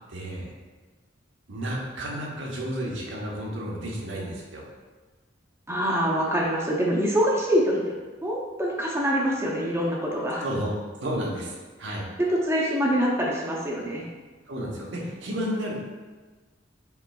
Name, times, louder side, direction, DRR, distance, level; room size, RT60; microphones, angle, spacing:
voice 1, 0.1-0.5 1.5-4.6 10.4-11.5 11.8-12.0 14.5-15.7, equal, 85° right, -3 dB, 0.9 m, -31 dB
voice 2, 5.7-7.8 8.2-10.4 12.3-14.1, equal, 15° right, -3 dB, 0.6 m, -25 dB
5.7 x 3.1 x 2.3 m, 1.4 s
head